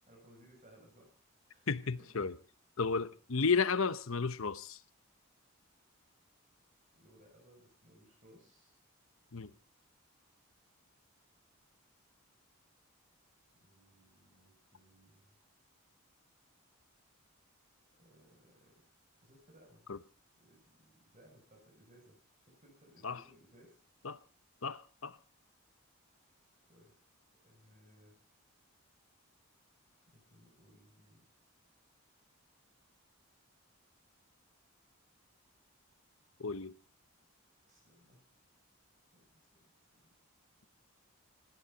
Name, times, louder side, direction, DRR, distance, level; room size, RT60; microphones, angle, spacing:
voice 1, 0.0-1.1 1.5-2.1 6.9-8.8 13.5-15.4 17.9-18.7 19.2-19.9 20.4-23.8 26.7-26.9 27.4-28.1 30.1-31.2 37.6-38.2 39.1-39.7 40.0-40.2, equal, 35° right, 7.3 m, -63 dB
voice 2, 1.7-2.3 2.8-4.8 9.3-9.5 19.9-20.0 23.0-23.2 24.0-24.2 24.6-25.2 36.4-36.7, left 5 dB, 70° left, 0.9 m, -33 dB
18.5 x 18.0 x 4.1 m
head